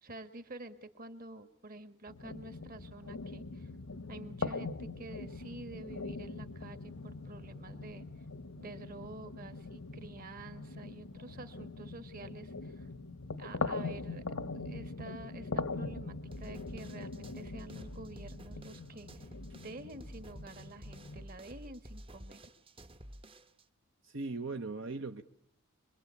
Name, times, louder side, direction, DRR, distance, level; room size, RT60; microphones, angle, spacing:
voice 1, 0.0-3.7 4.1-8.1 8.6-12.9 13.4-14.2 14.5-19.2 19.5-22.4, right 2 dB, 40° right, 10 dB, 1.8 m, -49 dB
sound 1, 2.1-21.2, left 3 dB, 80° left, 1.1 m, -42 dB
sound 2, 16.3-23.6, equal, 25° right, 1.0 m, -51 dB
voice 2, 24.0-25.2, right 3 dB, 60° right, 6 dB, 1.1 m, -38 dB
25.5 x 23.0 x 8.5 m, 0.68 s
head